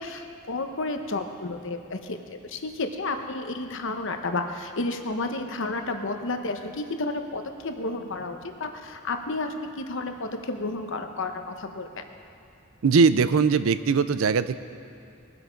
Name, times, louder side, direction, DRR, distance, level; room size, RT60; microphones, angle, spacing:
voice 1, 0.0-2.2 2.4-12.0, left 2 dB, 65° left, 6 dB, 1.0 m, -31 dB
voice 2, 12.8-14.6, right 5 dB, 70° right, 14 dB, 0.5 m, -20 dB
20.5 x 7.8 x 5.2 m, 2.7 s
head